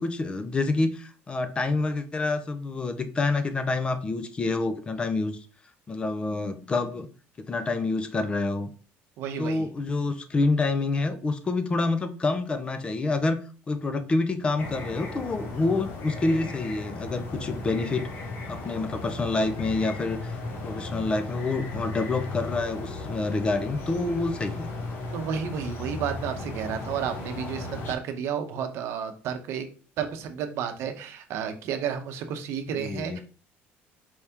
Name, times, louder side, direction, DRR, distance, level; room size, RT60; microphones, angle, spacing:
voice 1, 0.0-5.4 5.9-7.1 7.5-8.7 9.4-13.4 13.7-18.1 18.5-24.7 32.7-33.2, left 3 dB, 20° left, 9 dB, 0.5 m, -27 dB
voice 2, 9.2-9.7 25.1-29.7 30.0-33.2, right 8 dB, 65° right, 7 dB, 0.7 m, -31 dB
sound 1, 14.6-27.9, left 2 dB, 50° left, 1.0 m, -36 dB
4.6 x 3.4 x 2.8 m, 0.38 s
cardioid pair, 135°, 5 cm